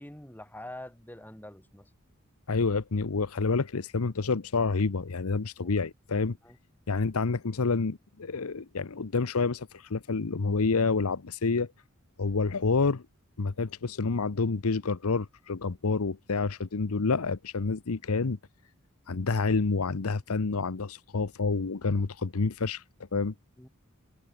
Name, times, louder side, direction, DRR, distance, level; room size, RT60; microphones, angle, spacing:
voice 1, 0.0-1.9 5.6-5.7 6.4-6.6 23.6-23.7, left 1 dB, 10° left, 3.9 m, -45 dB
voice 2, 2.5-6.4 6.9-11.7 12.2-13.0 13.4-18.4 19.1-22.8 23.1-23.3, left 4 dB, 80° left, 0.8 m, -28 dB
head